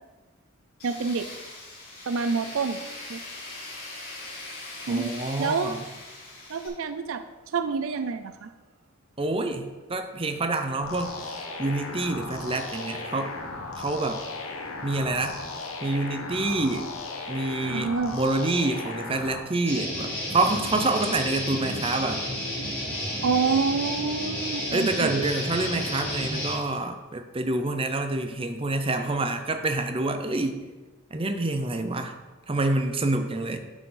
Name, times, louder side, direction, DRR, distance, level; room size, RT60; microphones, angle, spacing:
Tools, 0.8-6.7, left 2 dB, 45° left, 2.9 m, -41 dB
voice 1, 0.8-1.3 2.1-2.8 3.1-3.2 4.9-5.1 5.4-5.8 6.5-7.2 7.5-8.5 17.7-18.2 23.2-25.3, right 5 dB, 70° right, 10 dB, 0.5 m, -27 dB
voice 2, 4.9-5.8 9.2-11.2 11.6-13.3 13.8-14.2 14.8-15.4 15.8-16.9 17.3-22.3 24.7-30.6 31.1-32.1 32.5-33.6, right 2 dB, 25° right, 6 dB, 0.7 m, -27 dB
sound 1, 10.8-19.4, left 3 dB, 80° left, 1.2 m, -36 dB
Guitar, 19.7-26.5, left 1 dB, 10° left, 3.4 m, -31 dB
11.5 x 6.2 x 3.9 m, 1.2 s
head